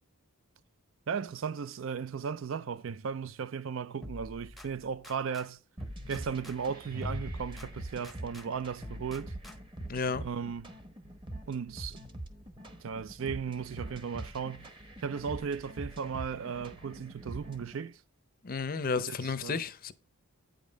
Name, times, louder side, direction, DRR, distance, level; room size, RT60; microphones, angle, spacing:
voice 1, 1.1-5.6 6.1-9.3 10.2-10.7 11.5-12.0 12.8-14.7 15.0-18.0 19.0-19.6, right 6 dB, 60° right, 0.4 m, -36 dB
sound 1, 4.0-5.5 5.8-8.5 8.8-9.8, left 1 dB, ahead, 0.7 m, -46 dB
sound 2, 5.8-17.8, right 1 dB, 20° right, 1.0 m, -44 dB
sound 3, 6.7-9.0 9.7-10.2 10.5-10.7 15.0-15.1, equal, 40° right, 1.7 m, -45 dB
voice 2, 9.9-10.3 18.4-19.9, left 5 dB, 40° left, 0.6 m, -32 dB
9.0 x 5.2 x 5.1 m
head